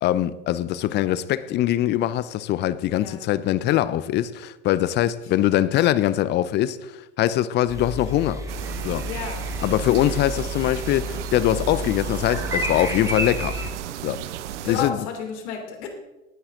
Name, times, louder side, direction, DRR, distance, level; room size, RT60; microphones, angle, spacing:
voice 1, 0.0-8.4 8.8-9.1 9.6-13.6 14.0-14.3 14.6-15.1, left 13 dB, 25° left, 0.6 m, -22 dB
sound 1, 7.7-13.7, equal, 10° right, 2.0 m, -31 dB
sound 2, 8.5-14.9, right 11 dB, 60° right, 0.9 m, -34 dB
voice 2, 9.0-9.4 9.8-10.2 14.6-15.9, left 7 dB, 55° left, 3.3 m, -32 dB
19.0 x 10.0 x 3.8 m
figure-of-eight pair, 90°, 39 cm